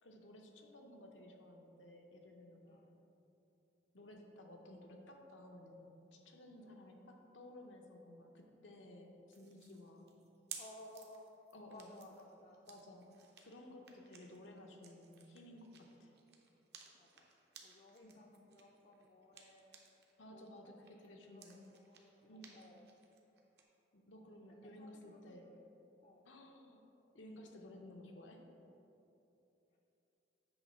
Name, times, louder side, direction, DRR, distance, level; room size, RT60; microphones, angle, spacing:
voice 1, 0.0-2.8 3.9-10.1 11.5-11.9 12.6-16.2 18.0-18.2 20.2-21.6 22.3-22.6 23.9-25.5 26.3-26.8 27.1-28.5, left 1 dB, 90° left, 2 dB, 0.8 m, -56 dB
voice 2, 2.6-3.0 6.6-6.8 10.0-10.2 10.6-11.3 11.7-12.7 16.9-17.3 17.6-19.8 20.3-20.7 21.0-22.9 24.8-25.6 26.0-26.3 29.7-29.8, left 1 dB, 40° left, 0 dB, 0.4 m, -59 dB
sound 1, 9.3-20.1 20.5-23.6, right 7 dB, 60° right, 0.7 m, -58 dB
8.0 x 3.2 x 5.4 m, 3.0 s
head